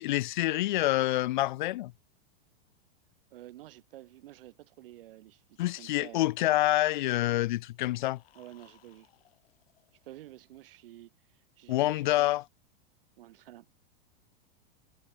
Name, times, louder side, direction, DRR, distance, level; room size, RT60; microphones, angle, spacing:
voice 1, 0.0-1.9 5.6-8.2 11.7-12.4, left 16 dB, 50° left, 0.5 m, -27 dB
voice 2, 3.3-6.3 8.3-9.1 10.0-12.4 13.2-13.7, right 14 dB, 60° right, 7.0 m, -50 dB
sound 1, 7.6-10.7, left 13 dB, 65° left, 7.2 m, -65 dB
supercardioid pair, 175°, 31 cm